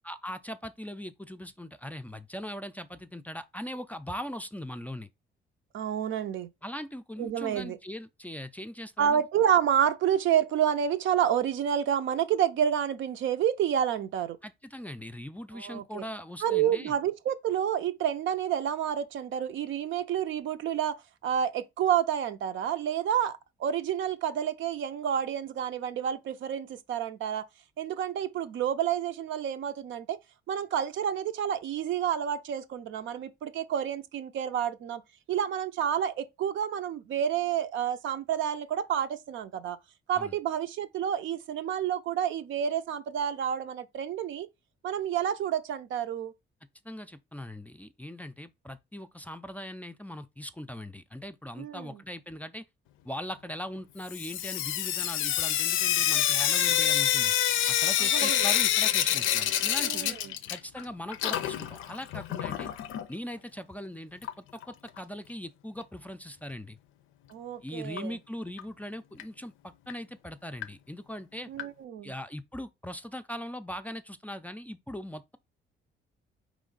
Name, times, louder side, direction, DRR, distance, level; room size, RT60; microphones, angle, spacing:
voice 1, 0.0-5.1 6.6-9.2 14.4-17.0 40.1-40.4 46.8-52.7 53.0-57.3 57.7-60.2 60.5-62.7 63.1-66.8 67.6-71.5 72.0-75.4, equal, 10° left, 0.4 m, -40 dB
voice 2, 5.7-6.5 7.2-7.8 9.0-14.4 15.5-16.0 16.4-21.0 21.2-27.4 27.8-30.2 30.5-35.0 35.3-39.8 40.1-44.5 44.8-46.3 51.6-52.0 58.0-58.5 59.8-60.4 67.3-68.2 71.5-72.1, right 9 dB, 75° right, 0.6 m, -29 dB
Sink (filling or washing) / Drip, 54.1-60.8 61.1-63.0 64.2-64.3 64.6-64.7 65.0-65.1 68.0-68.1 68.6-68.7 69.2-69.3 69.9-70.0 70.6-70.7 71.6-71.7, left 11 dB, 85° left, 0.5 m, -27 dB
4.3 x 3.1 x 3.8 m
cardioid pair, 90°, 20 cm